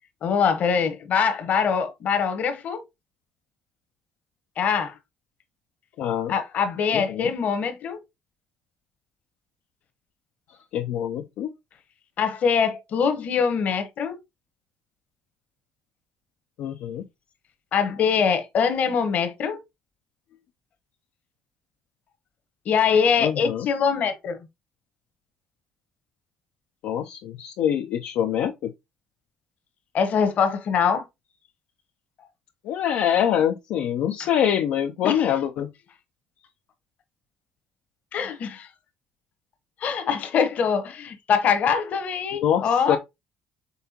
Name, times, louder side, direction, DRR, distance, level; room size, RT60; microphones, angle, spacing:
voice 1, 0.2-2.8 4.6-4.9 6.3-8.0 12.2-14.2 17.7-19.6 22.6-24.4 29.9-31.0 34.2-34.3 35.0-35.3 38.1-38.7 39.8-43.0, left 6 dB, 55° left, 1.1 m, -23 dB
voice 2, 6.0-6.3 6.9-7.3 10.7-11.5 16.6-17.0 23.2-23.7 26.8-28.7 32.6-35.7 42.4-43.0, left 9 dB, 75° left, 0.5 m, -25 dB
5.4 x 3.5 x 2.8 m
supercardioid pair, 85°, 3 cm